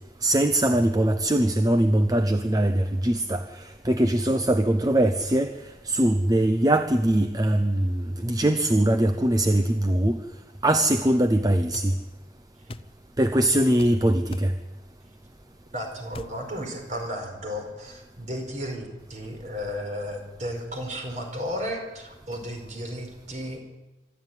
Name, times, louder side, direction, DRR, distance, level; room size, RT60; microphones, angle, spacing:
voice 1, 0.2-5.5 5.8-10.2 10.6-11.9 13.2-14.5, right 1 dB, 20° right, 8 dB, 0.8 m, -22 dB
sound 1, 11.7-11.9 12.7-12.9 13.8-14.0 14.3-14.5 16.1-16.4, left 2 dB, 30° left, 0.6 m, -40 dB
voice 2, 15.7-23.6, equal, 45° right, 3 dB, 4.8 m, -34 dB
25.0 x 13.0 x 9.3 m, 1.1 s
head